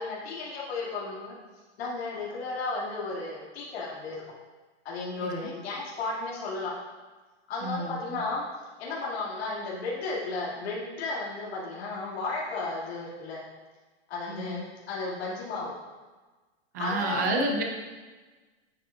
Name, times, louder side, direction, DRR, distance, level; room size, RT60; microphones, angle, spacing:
voice 1, 0.0-1.3 1.8-4.2 4.8-6.7 7.5-8.4 8.8-13.4 14.1-15.7 16.8-17.5, left 3 dB, 65° left, -5 dB, 2.1 m, -34 dB
voice 2, 7.6-8.2 14.3-14.6 16.7-17.6, right 2 dB, 15° right, 1 dB, 0.4 m, -30 dB
8.8 x 7.3 x 2.3 m, 1.3 s
supercardioid pair, 170°, 34 cm